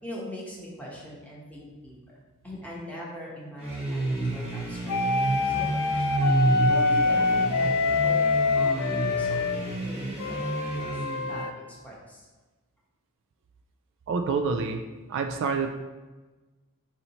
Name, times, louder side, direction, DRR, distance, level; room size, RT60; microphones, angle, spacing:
voice 1, 0.0-1.9 2.4-6.1 6.7-8.2 8.5-12.3, equal, 5° left, -5 dB, 0.9 m, -41 dB
sound 1, 3.6-11.4, right 2 dB, 30° right, 1.0 m, -30 dB
sound 2, 4.9-9.6 10.2-11.5, left 3 dB, 85° left, 0.4 m, -25 dB
voice 2, 14.1-14.8 15.1-15.7, right 5 dB, 60° right, 5 dB, 0.3 m, -27 dB
4.2 x 2.8 x 4.1 m, 1.2 s
head